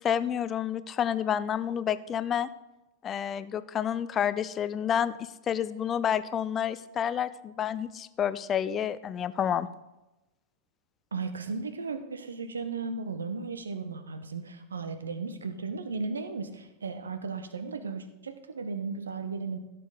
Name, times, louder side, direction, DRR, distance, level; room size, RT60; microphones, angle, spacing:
voice 1, 0.0-2.5 3.0-5.1 5.5-9.7, left 9 dB, 25° left, 15 dB, 0.5 m, -29 dB
voice 2, 11.1-19.6, right 4 dB, 70° right, 10 dB, 0.9 m, -35 dB
16.0 x 6.8 x 3.8 m, 1.0 s
figure-of-eight pair, 90°, 0 cm